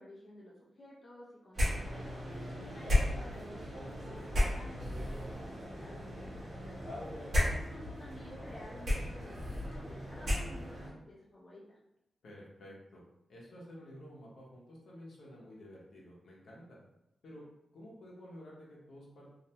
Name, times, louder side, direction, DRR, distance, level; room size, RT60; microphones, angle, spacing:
voice 1, 0.0-2.1 2.7-6.9 7.2-11.8, left 1 dB, 35° left, -5 dB, 0.5 m, -53 dB
sound 1, 1.5-10.9, left 1 dB, 45° right, 0.8 m, -35 dB
voice 2, 12.2-13.0 13.3-16.8 17.2-17.4 17.7-19.3, equal, 85° left, -4 dB, 0.7 m, -51 dB
2.5 x 2.1 x 2.8 m, 0.85 s
wide cardioid pair, 165°, 0 cm